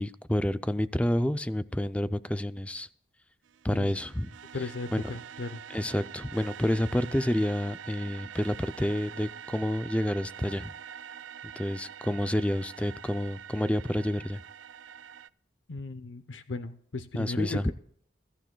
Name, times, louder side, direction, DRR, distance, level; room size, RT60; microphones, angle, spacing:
voice 1, 0.0-2.9 3.6-4.3 4.6-5.1 5.7-10.7 11.6-14.4 17.2-17.7, left 1 dB, 5° left, 13 dB, 0.4 m, -29 dB
sound 1, 3.4-15.3, right 8 dB, 90° right, 0.4 m, -45 dB
voice 2, 4.5-5.6 15.7-17.7, left 3 dB, 80° left, 10 dB, 0.7 m, -36 dB
22.0 x 12.5 x 2.3 m, 0.64 s
head